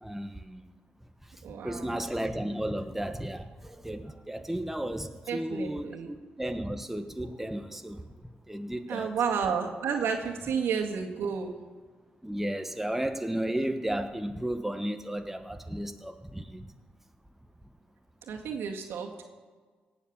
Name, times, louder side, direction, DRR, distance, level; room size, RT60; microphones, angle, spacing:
voice 1, 0.0-0.6 1.6-8.0 8.5-9.1 12.2-16.7, right 1 dB, 5° right, 7 dB, 1.1 m, -34 dB
voice 2, 1.4-2.0 4.4-4.5 5.3-6.1 8.9-11.5 18.2-19.3, right 6 dB, 80° right, 2 dB, 1.9 m, -31 dB
18.0 x 7.2 x 7.2 m, 1.4 s
supercardioid pair, 55°, 4 cm